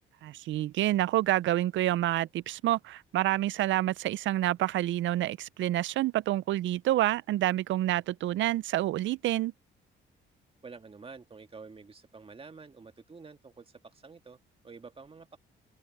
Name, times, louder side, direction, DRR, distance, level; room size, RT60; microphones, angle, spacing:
voice 1, 0.2-9.5, right 14 dB, 70° right, 0.5 m, -28 dB
voice 2, 10.6-14.4 14.6-15.4, right 4 dB, 30° right, 2.1 m, -49 dB
open air
cardioid pair, 90°, 20 cm